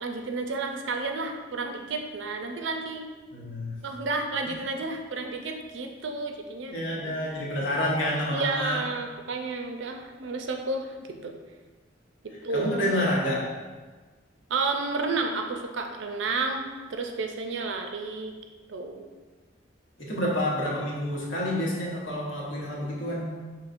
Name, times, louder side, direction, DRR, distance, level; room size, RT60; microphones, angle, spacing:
voice 1, 0.0-3.0 3.8-6.8 7.1-7.2 8.3-11.4 12.2-12.7 14.5-18.3 18.7-19.1, right 3 dB, 75° right, 4 dB, 0.5 m, -31 dB
voice 2, 3.3-3.8 6.7-8.8 12.3-13.5 20.0-23.3, left 1 dB, 85° left, -4 dB, 1.1 m, -28 dB
5.6 x 3.1 x 2.6 m, 1.4 s
head